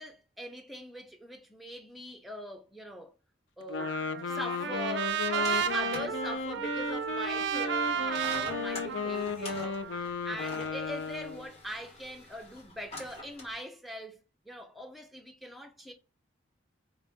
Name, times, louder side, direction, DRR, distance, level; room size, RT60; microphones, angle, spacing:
voice 1, 0.0-3.1 3.6-4.0 4.3-14.2 14.5-15.9, equal, ahead, 0.6 m, -42 dB
Wind instrument woodwind instrument, 3.6-11.5, left 5 dB, 75° left, 0.4 m, -35 dB
Trumpet, 3.8-10.0, right 7 dB, 65° right, 0.4 m, -33 dB
sound 1, 5.1-13.5, left 2 dB, 35° left, 1.1 m, -47 dB
4.4 x 2.5 x 3.4 m
head